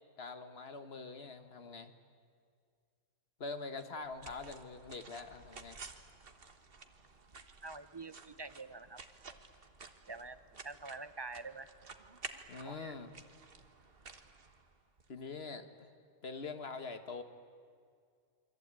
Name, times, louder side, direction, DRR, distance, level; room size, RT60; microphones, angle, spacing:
voice 1, 0.2-1.9 3.4-5.8 12.5-13.1 15.1-15.9 16.2-17.2, left 4 dB, 45° left, 9 dB, 1.7 m, -44 dB
sound 1, 3.8-15.1, right 4 dB, 40° right, 1.5 m, -53 dB
voice 2, 7.6-9.0 10.1-10.4 10.6-11.7 12.6-12.9, right 3 dB, 25° right, 13 dB, 0.6 m, -46 dB
27.5 x 23.5 x 9.0 m, 2.2 s
omnidirectional pair, 1.5 m